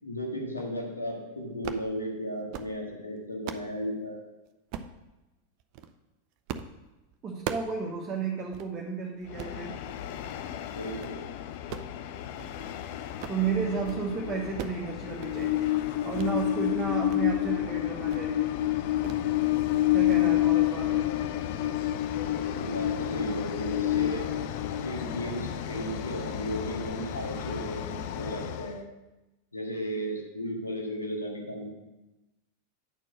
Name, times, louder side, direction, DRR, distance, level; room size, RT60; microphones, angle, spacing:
voice 1, 0.0-4.2 10.7-11.2 20.0-20.4 22.5-24.3 24.8-28.9 29.5-31.6, equal, 80° left, -1 dB, 1.9 m, -35 dB
sound 1, 1.5-1.9 2.3-2.7 3.2-3.7 4.7-5.0 5.6-5.9 6.5-6.7 7.0-7.8 8.1-8.2 8.5-8.7 9.2-9.6 10.1-10.4 10.7-11.2 11.5-12.8 13.0-13.5 13.7-14.0 14.3-14.8 15.1-15.5 16.1-16.3 16.7-17.2 17.5-17.7 18.1-18.3 19.0-19.3 19.6-19.8 20.1-20.2, right 8 dB, 45° right, 0.5 m, -40 dB
voice 2, 7.2-9.8 13.3-18.5 19.9-21.0, right 5 dB, 25° right, -2 dB, 1.2 m, -33 dB
Train, 9.3-28.8, left 13 dB, 50° left, 0.5 m, -30 dB
9.2 x 4.5 x 6.1 m, 1.0 s
figure-of-eight pair, 90°, 0 cm